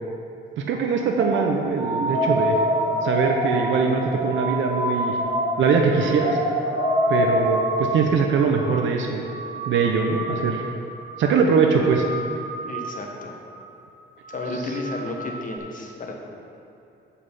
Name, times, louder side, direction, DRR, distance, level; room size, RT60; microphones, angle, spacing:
voice 1, 0.6-2.6 3.0-5.2 5.6-6.4 7.1-9.2 9.7-10.7 11.2-12.0, right 5 dB, 75° right, 3 dB, 0.8 m, -22 dB
sound 1, 1.2-8.2 8.4-9.0 9.2-10.7 11.0-11.4 11.7-13.2 13.5-13.9 14.2-15.6, right 2 dB, 30° right, 0.8 m, -31 dB
sound 2, 2.1-7.8, left 1 dB, 50° right, 2.1 m, -25 dB
voice 2, 12.6-13.4 14.3-16.1, left 2 dB, 40° left, 1 dB, 1.3 m, -32 dB
8.6 x 5.6 x 5.4 m, 2.8 s
cardioid pair, 90°, 20 cm